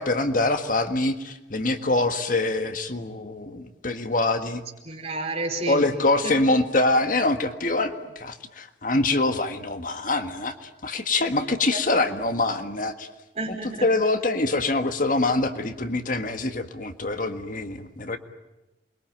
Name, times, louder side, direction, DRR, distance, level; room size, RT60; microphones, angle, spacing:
voice 1, 0.0-4.6 5.7-13.1 13.8-18.2, left 2 dB, 50° left, 8 dB, 1.7 m, -24 dB
voice 2, 4.8-5.8 6.2-6.4 11.7-11.8 13.3-13.8, right 2 dB, 35° right, 2 dB, 5.0 m, -30 dB
28.5 x 22.5 x 9.1 m, 1.0 s
head